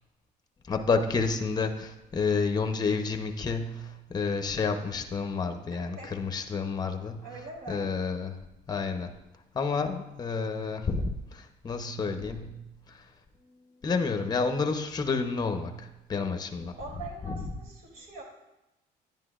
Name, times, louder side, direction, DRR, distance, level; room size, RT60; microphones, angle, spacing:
voice 1, 0.7-8.4 8.7-9.2 9.5-12.6 12.9-13.1 13.8-16.7 17.2-17.5, left 4 dB, 25° left, 6 dB, 0.8 m, -30 dB
voice 2, 5.7-6.1 7.2-7.9 16.8-18.2, right 2 dB, 60° right, -1 dB, 3.0 m, -42 dB
10.5 x 9.9 x 2.4 m, 0.94 s
cardioid pair, 110°, 17 cm